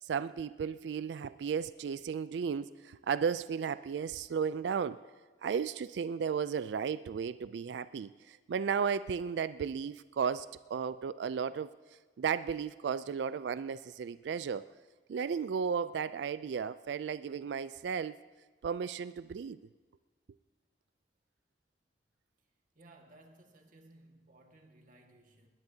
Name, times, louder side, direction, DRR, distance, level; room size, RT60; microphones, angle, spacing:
voice 1, 0.0-5.0 5.4-11.7 12.2-14.7 15.1-18.2 18.6-19.6, right 6 dB, 75° right, 15 dB, 0.3 m, -34 dB
voice 2, 22.7-25.5, right 2 dB, 50° right, 3 dB, 1.8 m, -59 dB
20.5 x 18.5 x 2.8 m, 1.4 s
head